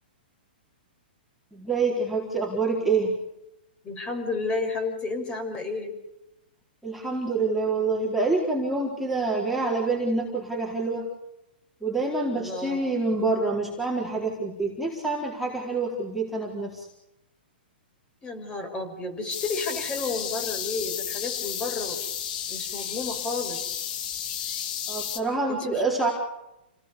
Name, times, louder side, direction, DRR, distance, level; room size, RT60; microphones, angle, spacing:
voice 1, 1.5-3.1 6.8-11.1 11.8-16.9 24.9-26.1, right 3 dB, ahead, -4 dB, 4.3 m, -26 dB
voice 2, 3.8-5.9 12.3-12.8 18.2-22.0 22.5-23.7 25.5-25.8, left 3 dB, 15° left, 6 dB, 5.6 m, -31 dB
sound 1, 19.3-25.2, left 9 dB, 50° left, 2.7 m, -32 dB
29.0 x 19.0 x 7.0 m, 0.88 s
hypercardioid pair, 145°, 6 cm